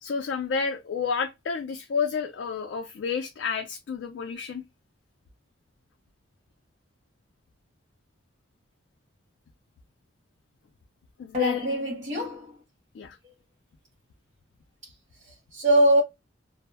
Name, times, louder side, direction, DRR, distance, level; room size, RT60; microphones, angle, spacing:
voice 1, 0.0-4.6 11.2-11.7 12.9-13.2, left 5 dB, 75° left, 0.4 m, -30 dB
voice 2, 11.3-12.6 14.8-14.9 15.2-16.0, equal, 40° right, 0.7 m, -23 dB
2.0 x 2.0 x 3.2 m
head